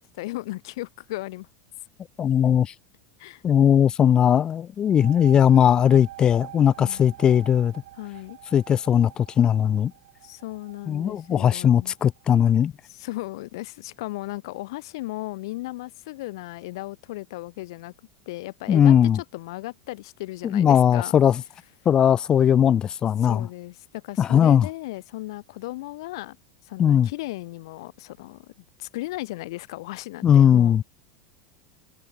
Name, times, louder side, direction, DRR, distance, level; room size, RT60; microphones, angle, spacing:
voice 1, 0.0-1.5 3.2-3.4 6.8-7.0 8.0-8.4 10.2-11.9 12.8-17.9 18.3-21.2 23.2-26.4 26.6-28.5 28.8-30.8, left 19 dB, 70° left, 1.2 m, -36 dB
voice 2, 2.2-2.7 3.4-7.7 8.5-9.9 10.9-12.7 18.7-19.2 20.4-21.4 21.9-23.5 24.2-24.7 26.8-27.1 30.2-30.8, left 9 dB, 30° left, 0.4 m, -19 dB
sound 1, 4.8-12.2, right 15 dB, 80° right, 1.4 m, -46 dB
hypercardioid pair, 105°, 3 cm